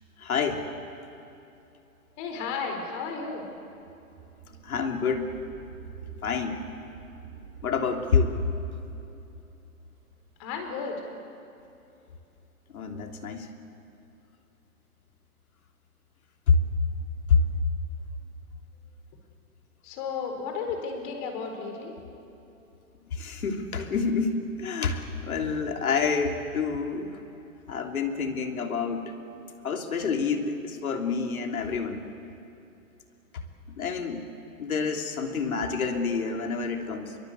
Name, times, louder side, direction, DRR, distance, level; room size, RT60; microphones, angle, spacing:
voice 1, 0.2-0.6 4.6-5.4 6.2-6.7 7.6-8.4 12.7-13.5 16.5-16.6 17.3-17.4 23.1-27.2 27.7-29.1 29.6-32.1 33.8-34.2 34.6-37.2, left 5 dB, 70° left, 4 dB, 3.2 m, -27 dB
sound 1, 2.0-11.0, right 7 dB, 50° right, 4.6 m, -48 dB
voice 2, 2.2-3.4 10.4-11.0 19.8-21.9, left 5 dB, 35° left, 4 dB, 4.7 m, -33 dB
25.5 x 23.0 x 8.2 m, 2.8 s
hypercardioid pair, 140°, 44 cm